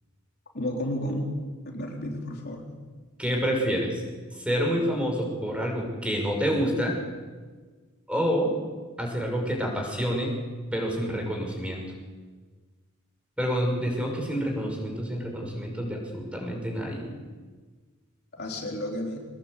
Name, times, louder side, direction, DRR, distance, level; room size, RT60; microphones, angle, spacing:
voice 1, 0.5-1.4 1.6-2.6 18.4-19.3, left 1 dB, 50° left, 0 dB, 3.8 m, -32 dB
voice 2, 3.2-4.0 4.3-6.9 8.1-8.5 9.0-10.3 10.7-11.8 13.4-17.1, equal, 5° right, 1 dB, 6.3 m, -28 dB
24.5 x 19.5 x 8.4 m, 1.4 s
head